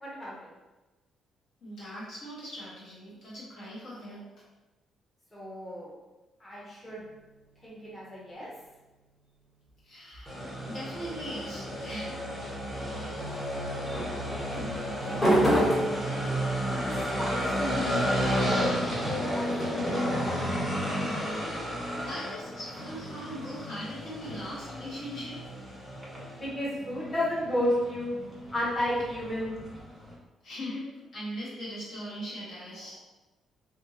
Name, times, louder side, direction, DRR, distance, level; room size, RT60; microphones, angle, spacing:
voice 1, 0.0-0.5 5.3-5.9 6.4-7.0 7.6-8.5 16.7-18.8 19.2-20.1 26.3-28.2 28.5-29.6, left 1 dB, 15° left, -6 dB, 0.9 m, -33 dB
voice 2, 1.6-4.2 9.8-10.3 10.6-12.2 21.9-25.4 30.4-30.8 31.1-33.0, equal, 70° left, -8 dB, 1.3 m, -40 dB
sound 1, 6.9-8.7 12.3-12.8 13.9-20.7 22.5-25.5, equal, 30° left, 1.5 m, -33 dB
sound 2, 10.3-30.1, equal, ahead, 1.5 m, -32 dB
2.6 x 2.6 x 2.9 m, 1.1 s
cardioid pair, 90°, 0 cm